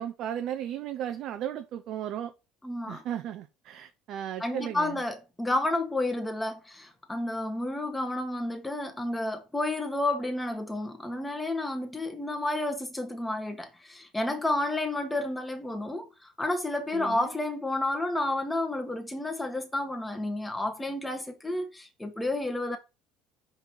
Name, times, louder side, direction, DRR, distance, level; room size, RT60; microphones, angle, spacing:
voice 1, 0.0-2.3 2.9-5.0 16.9-17.3, right 10 dB, 60° right, 0.5 m, -35 dB
voice 2, 2.6-3.0 4.4-22.8, left 2 dB, 10° left, 1.6 m, -31 dB
5.4 x 3.9 x 4.6 m
hypercardioid pair, 70°, 0 cm